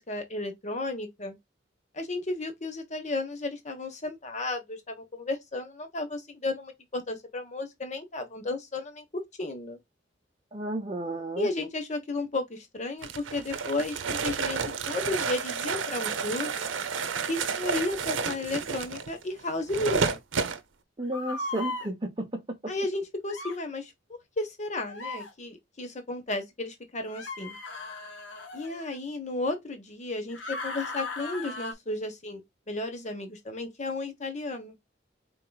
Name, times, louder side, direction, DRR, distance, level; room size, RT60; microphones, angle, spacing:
voice 1, 0.0-1.4 1.9-9.0 9.4-9.8 11.4-14.6 14.9-16.7 17.3-20.2 22.7-23.9 24.4-27.6 28.5-32.4 32.7-34.7, left 2 dB, 40° left, 1.1 m, -33 dB
voice 2, 10.5-11.5 21.0-22.7, right 1 dB, 25° right, 0.8 m, -33 dB
sound 1, 13.0-20.6, right 5 dB, 90° right, 0.7 m, -31 dB
sound 2, 21.1-21.9 23.3-23.6 24.9-25.3 27.1-29.0 30.3-31.7, left 2 dB, 80° left, 1.1 m, -37 dB
4.4 x 3.8 x 2.3 m
head